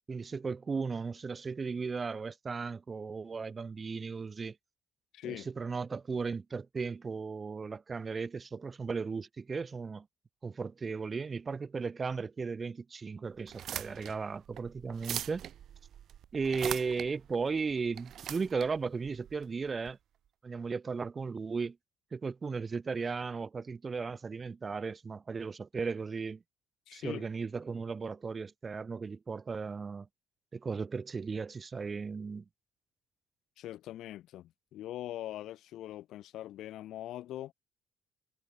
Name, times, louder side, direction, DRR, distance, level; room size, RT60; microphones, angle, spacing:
voice 1, 0.1-4.6 5.2-10.1 10.4-15.4 16.3-20.0 20.4-21.8 22.1-26.4 26.9-30.1 30.5-32.4, right 5 dB, 25° right, 0.4 m, -36 dB
voice 2, 5.1-5.5 26.9-27.2 33.6-37.5, left 13 dB, 65° left, 1.9 m, -42 dB
sound 1, 13.4-19.9, right 10 dB, 50° right, 1.5 m, -42 dB
cardioid pair, 140°, 0 cm